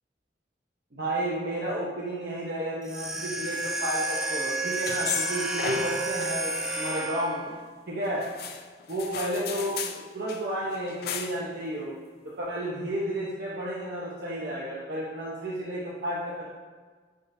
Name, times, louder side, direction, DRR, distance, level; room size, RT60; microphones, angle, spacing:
voice 1, 0.9-7.4 7.9-8.3 8.9-12.0 12.4-16.5, right 1 dB, 60° right, -6 dB, 0.9 m, -32 dB
sound 1, 2.8-7.6, right 2 dB, 5° right, 0.5 m, -31 dB
sound 2, 4.9-6.4 6.7-7.6 8.2-10.0 10.3-10.4 10.7-11.5, left 7 dB, 60° left, 0.4 m, -35 dB
9.5 x 3.7 x 2.7 m, 1.5 s
head